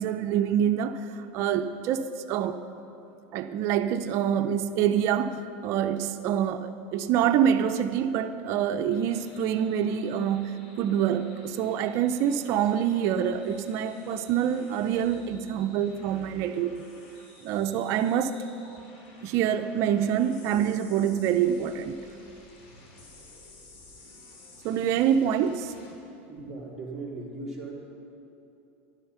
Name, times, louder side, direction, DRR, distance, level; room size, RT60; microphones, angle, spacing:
voice 1, 0.0-2.6 3.3-16.8 17.4-18.3 18.6-18.8 19.2-22.1 24.6-25.7, right 9 dB, 50° right, 9 dB, 0.5 m, -26 dB
sound 1, 8.9-25.9, left 2 dB, 65° left, 2.7 m, -54 dB
voice 2, 26.3-27.7, right 2 dB, 5° right, -7 dB, 3.3 m, -38 dB
12.0 x 11.5 x 5.6 m, 2.8 s
supercardioid pair, 130°, 6 cm